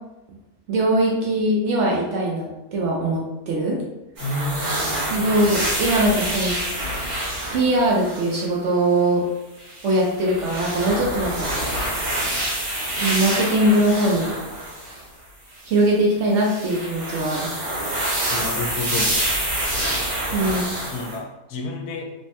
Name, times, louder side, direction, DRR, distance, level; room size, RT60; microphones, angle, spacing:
voice 1, 0.7-3.8 5.1-6.6 7.5-9.2 9.8-11.5 13.0-14.3 15.7-17.5 20.3-20.7, right 1 dB, 65° right, -2 dB, 0.8 m, -21 dB
voice 2, 4.2-5.2 18.3-19.1 20.8-22.0, left 2 dB, 85° left, 2 dB, 1.1 m, -30 dB
sound 1, 4.2-8.5 9.6-15.0 15.5-15.8 16.3-21.2, right 1 dB, 90° right, 1.5 m, -27 dB
3.2 x 2.0 x 2.7 m, 0.95 s
omnidirectional pair, 1.5 m